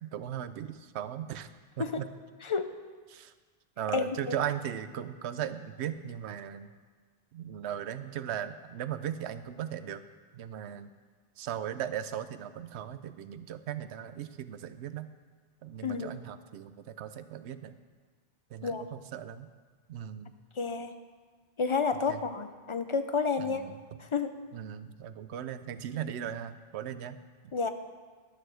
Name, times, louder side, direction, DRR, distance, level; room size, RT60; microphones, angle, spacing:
voice 1, 0.0-1.5 1.8-2.1 3.1-3.3 3.8-6.7 7.3-10.0 10.3-10.9 11.4-15.1 15.6-17.8 18.5-19.5 19.9-20.3 22.1-22.2 23.4-24.0 24.5-27.2 27.4-27.6, right 10 dB, 85° right, 12 dB, 0.9 m, -38 dB
voice 2, 3.9-4.4 15.8-16.1 18.6-18.8 20.6-20.9 21.6-23.6 24.1-24.3 27.5-27.7, left 4 dB, 40° left, 8 dB, 0.5 m, -30 dB
12.0 x 6.7 x 6.3 m, 1.5 s
omnidirectional pair, 1.1 m